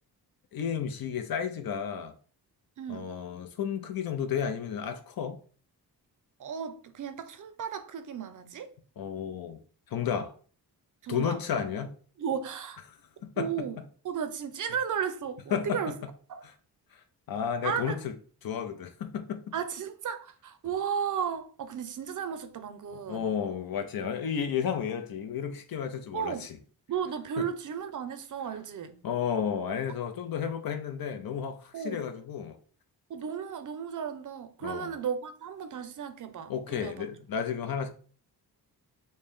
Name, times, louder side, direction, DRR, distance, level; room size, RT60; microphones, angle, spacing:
voice 1, 0.5-2.1 2.9-5.4 9.0-9.6 9.9-10.3 11.1-12.0 13.2-13.5 15.5-15.8 16.4-16.5 16.9-18.1 18.4-19.4 22.9-26.6 27.4-27.5 29.0-32.6 34.6-34.9 36.5-37.9, left 7 dB, 60° left, 0.6 m, -32 dB
voice 2, 2.8-3.1 6.4-8.7 11.0-11.4 12.2-12.8 13.4-13.8 14.0-15.9 16.3-16.4 17.6-18.0 19.5-23.3 26.1-26.5 26.9-29.0 31.7-32.1 33.1-37.0, right 7 dB, 50° right, 0.5 m, -34 dB
3.2 x 2.7 x 3.6 m
wide cardioid pair, 110°, 39 cm